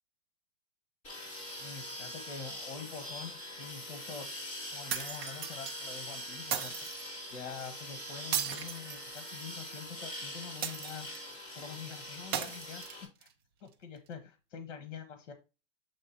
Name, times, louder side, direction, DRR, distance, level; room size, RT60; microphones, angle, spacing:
sound 1, 1.0-13.0, equal, 20° left, 3.4 m, -43 dB
voice 1, 1.6-4.3 4.7-6.8 7.3-11.1 11.5-13.3 13.6-15.3, left 6 dB, 65° left, 8 dB, 1.5 m, -45 dB
sound 2, 4.9-5.8 6.5-7.1 8.3-9.5 10.6-11.3 12.3-13.3, right 8 dB, 20° right, 0.4 m, -36 dB
7.7 x 3.3 x 4.4 m, 0.29 s
supercardioid pair, 170°, 37 cm